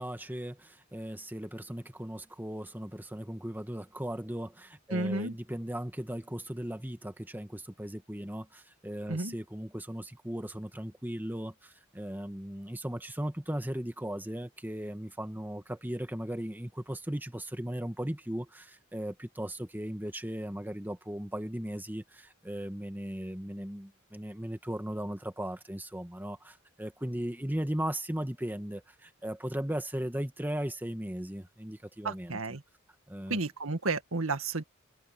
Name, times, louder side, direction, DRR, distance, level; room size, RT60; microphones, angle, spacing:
voice 1, 0.0-32.4 33.1-33.4, equal, 10° right, 1.7 m, -37 dB
voice 2, 4.9-5.3 9.1-9.3 32.0-32.6 33.3-34.6, right 3 dB, 75° right, 1.9 m, -32 dB
head